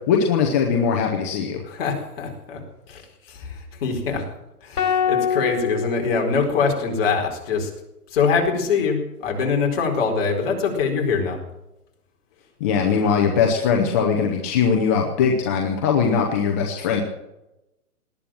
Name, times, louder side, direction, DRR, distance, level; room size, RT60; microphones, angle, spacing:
voice 1, 0.1-1.6 12.6-17.0, left 6 dB, 10° left, 1 dB, 0.6 m, -20 dB
voice 2, 1.7-2.6 2.9-3.0 3.3-4.2 4.6-7.7 8.1-11.4, left 5 dB, 40° left, 2 dB, 4.5 m, -23 dB
sound 1, 4.8-7.1, left 6 dB, 80° left, 4.3 m, -25 dB
18.5 x 10.5 x 7.5 m, 0.92 s
hypercardioid pair, 155°, 46 cm